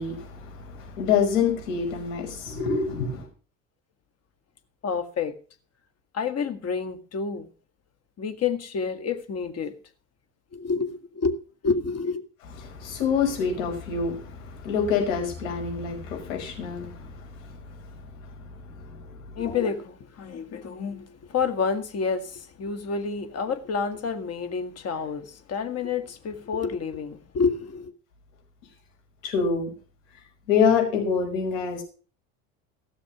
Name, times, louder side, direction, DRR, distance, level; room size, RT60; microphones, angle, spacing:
voice 1, 0.0-3.3 12.6-17.8 18.4-19.5 29.2-29.7 30.5-31.8, left 6 dB, 70° left, 5.4 m, -27 dB
voice 2, 4.8-5.3 6.1-7.5 8.2-9.7 10.5-12.2 19.4-27.9, left 5 dB, 35° left, 2.0 m, -29 dB
16.5 x 7.0 x 6.1 m
hypercardioid pair, 75°, 41 cm